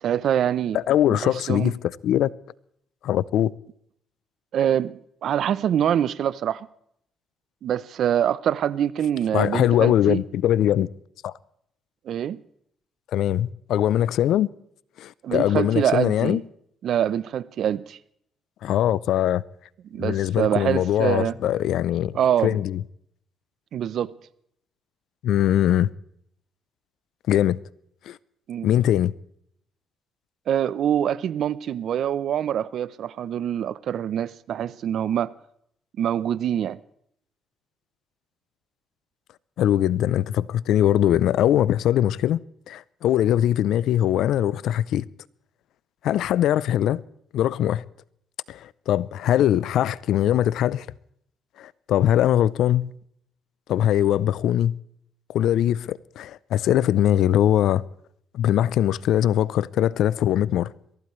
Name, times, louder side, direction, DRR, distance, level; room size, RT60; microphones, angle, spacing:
voice 1, 0.0-0.8 1.1-1.7 4.5-6.7 7.6-10.2 12.1-12.4 15.2-16.4 16.8-18.0 19.9-21.4 22.1-22.6 23.7-24.1 28.5-28.7 30.5-35.3 36.0-36.8, right 10 dB, 70° right, 0.6 m, -25 dB
voice 2, 0.7-2.3 3.0-3.5 9.3-10.9 11.2-11.3 13.1-14.5 15.0-16.4 18.6-19.4 20.0-22.1 22.4-22.8 25.2-25.9 27.3-27.6 28.1-28.2 28.6-29.1 39.6-42.4 42.7-45.1 46.0-47.0 47.3-47.8 48.5-50.9 51.6-52.9 53.7-54.7 55.3-57.8 58.3-60.7, left 11 dB, 80° left, 0.5 m, -21 dB
23.0 x 16.5 x 3.2 m
cardioid pair, 90°, 0 cm